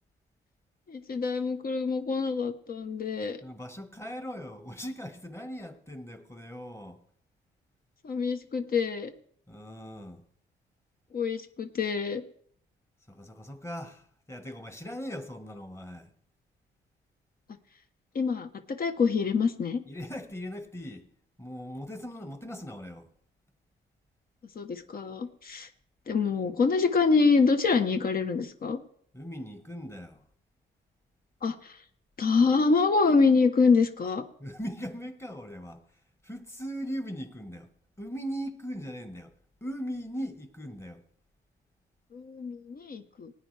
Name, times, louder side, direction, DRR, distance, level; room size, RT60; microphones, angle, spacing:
voice 1, 0.9-3.4 8.0-9.1 11.1-12.2 18.1-19.8 24.5-25.7 26.1-28.8 31.4-31.8 32.2-34.2 42.1-43.3, left 4 dB, 45° left, 1.0 m, -26 dB
voice 2, 3.4-7.0 9.5-10.2 13.1-16.1 19.9-21.1 21.4-23.1 29.1-30.2 34.4-35.8 36.2-37.7 38.0-39.3 39.6-41.0, equal, 15° left, 1.5 m, -39 dB
19.0 x 9.3 x 3.4 m
cardioid pair, 90°, 20 cm